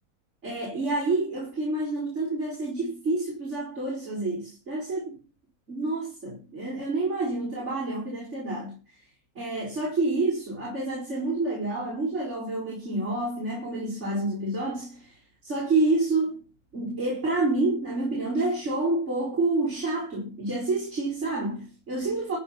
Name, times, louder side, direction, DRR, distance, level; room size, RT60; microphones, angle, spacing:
voice 1, 0.4-5.2 5.7-8.7 9.4-22.4, right 2 dB, 55° right, 5.3 m, -28 dB
14.5 x 7.6 x 5.8 m
omnidirectional pair, 1.5 m